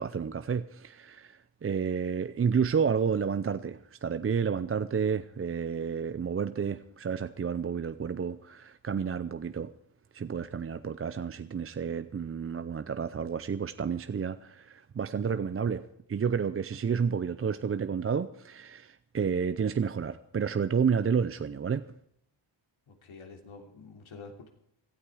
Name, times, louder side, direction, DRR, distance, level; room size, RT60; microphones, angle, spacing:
voice 1, 0.0-9.7 10.1-21.8, right 6 dB, 30° right, 0.5 m, -30 dB
voice 2, 22.9-24.5, left 4 dB, 75° left, 3.3 m, -48 dB
17.5 x 13.0 x 4.9 m
wide cardioid pair, 115°, 48 cm